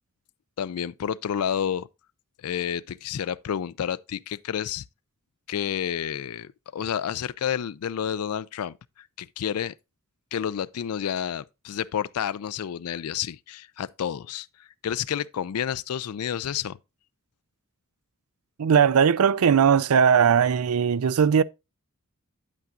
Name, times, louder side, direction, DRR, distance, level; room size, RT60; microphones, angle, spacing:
voice 1, 0.6-1.9 2.4-4.8 5.5-8.8 9.2-9.7 10.3-16.8, left 9 dB, 85° left, 0.4 m, -30 dB
voice 2, 18.6-21.4, right 7 dB, 80° right, 0.4 m, -19 dB
9.0 x 8.4 x 2.4 m
head